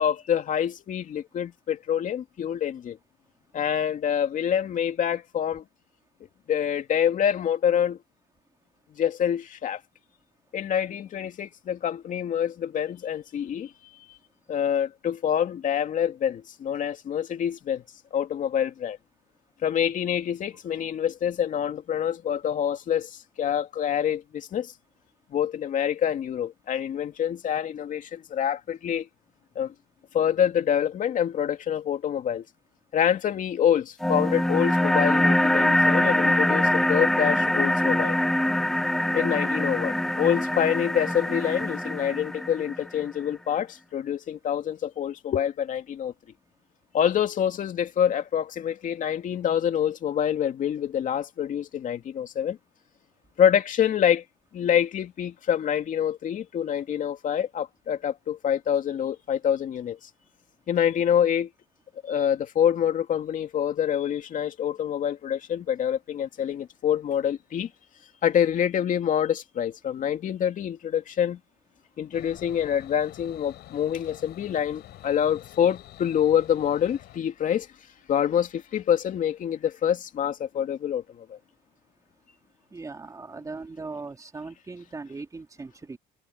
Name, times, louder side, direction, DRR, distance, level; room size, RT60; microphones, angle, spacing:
voice 1, 0.0-3.0 3.5-5.6 6.5-8.0 8.9-9.8 10.5-13.7 14.5-17.8 18.1-19.0 19.6-24.7 25.3-29.1 29.6-29.7 30.1-32.4 32.9-38.2 39.1-46.1 46.9-52.6 53.4-54.2 54.5-60.1 60.7-61.5 62.0-67.7 68.2-71.4 72.0-77.7 78.1-81.4, left 9 dB, 50° left, 2.5 m, -26 dB
sound 1, 34.0-43.0, left 1 dB, ahead, 0.3 m, -23 dB
sound 2, 72.1-77.2, left 15 dB, 70° left, 7.4 m, -47 dB
voice 2, 82.7-86.0, right 3 dB, 20° right, 3.5 m, -39 dB
cardioid pair, 125°, 17 cm